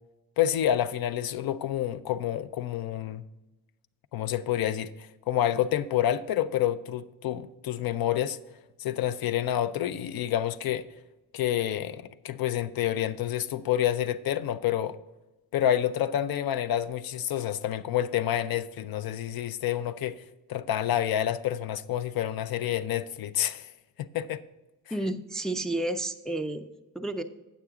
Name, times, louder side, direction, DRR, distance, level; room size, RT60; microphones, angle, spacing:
voice 1, 0.4-3.2 4.1-8.4 8.8-10.8 11.3-15.0 15.5-20.2 20.5-23.7 24.0-24.4 24.9-25.0, left 11 dB, 70° left, 0.5 m, -28 dB
voice 2, 24.9-26.7 26.9-27.2, right 1 dB, ahead, 0.4 m, -31 dB
9.0 x 8.4 x 3.6 m
cardioid pair, 140°, 38 cm